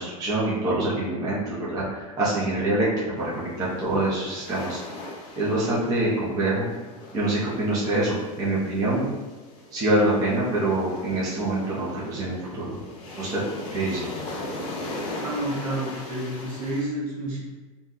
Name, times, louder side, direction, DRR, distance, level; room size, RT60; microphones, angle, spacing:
voice 1, 0.0-2.9 3.2-4.8 5.4-6.7 7.1-9.1 9.7-12.7 13.2-13.4 13.7-14.1, right 2 dB, 20° right, -7 dB, 0.5 m, -25 dB
sound 1, 3.2-16.8, left 2 dB, 45° left, 0.6 m, -39 dB
voice 2, 15.2-17.4, right 1 dB, 70° right, -4 dB, 1.1 m, -29 dB
2.6 x 2.2 x 3.6 m, 1.3 s
supercardioid pair, 170°, 18 cm